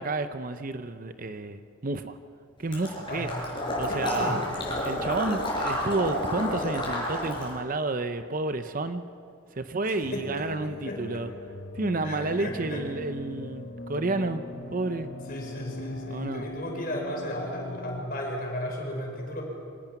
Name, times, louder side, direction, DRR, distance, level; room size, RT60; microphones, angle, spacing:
voice 1, 0.0-2.2 2.6-3.3 3.8-4.4 4.8-9.0 9.5-11.3 11.7-14.4 14.7-15.1 16.1-16.5, right 2 dB, 40° right, 10 dB, 0.7 m, -30 dB
Water / Liquid, 2.7-7.6, left 1 dB, 25° left, 5.6 m, -30 dB
voice 2, 3.1-3.5 3.9-4.4 9.9-11.0 12.0-12.8 15.3-19.4, equal, 45° left, 0 dB, 4.9 m, -34 dB
sound 1, 10.0-18.0, left 2 dB, 90° left, 1.9 m, -41 dB
25.0 x 18.0 x 6.0 m, 2.4 s
head